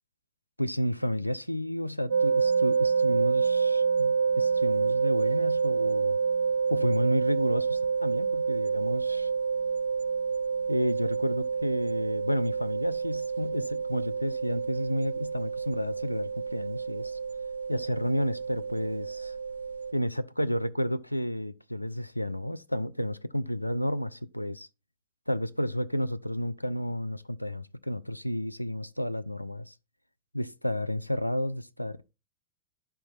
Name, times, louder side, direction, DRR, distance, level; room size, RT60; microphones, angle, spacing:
voice 1, 0.6-6.2 6.7-9.3 10.7-17.2 17.7-19.4 19.9-24.7 25.3-29.7 30.3-32.0, equal, 90° left, 0.4 m, -31 dB
sound 1, 2.1-19.9, right 5 dB, 70° right, 0.5 m, -28 dB
9.8 x 6.0 x 4.1 m
figure-of-eight pair, 90°, 0 cm